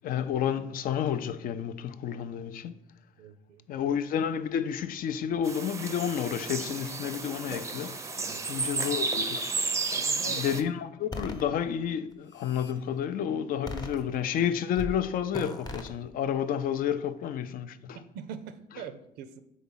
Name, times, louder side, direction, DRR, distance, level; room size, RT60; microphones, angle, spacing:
voice 1, 0.0-2.8 3.7-8.0 8.5-9.5 10.2-18.0, left 8 dB, 60° left, 0.5 m, -30 dB
voice 2, 3.2-3.8 8.2-8.4 9.9-10.4 18.1-19.4, right 8 dB, 80° right, 0.5 m, -43 dB
sound 1, 5.4-10.6, right 4 dB, 20° right, 0.5 m, -32 dB
sound 2, 11.1-11.4 12.1-12.8 13.7-14.4 14.7-15.0 15.3-15.9, left 1 dB, 25° left, 0.8 m, -37 dB
4.6 x 4.1 x 5.5 m
cardioid pair, 110°, 17 cm